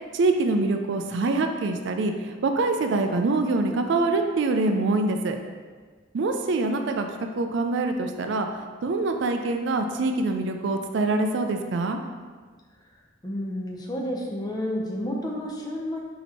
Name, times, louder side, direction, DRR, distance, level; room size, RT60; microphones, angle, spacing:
voice 1, 0.1-5.4 6.1-7.1 7.4-8.5 8.8-12.0, right 3 dB, 60° right, 5 dB, 0.3 m, -24 dB
voice 2, 13.2-16.0, left 1 dB, 20° left, 0 dB, 0.5 m, -30 dB
4.3 x 2.8 x 4.2 m, 1.5 s
head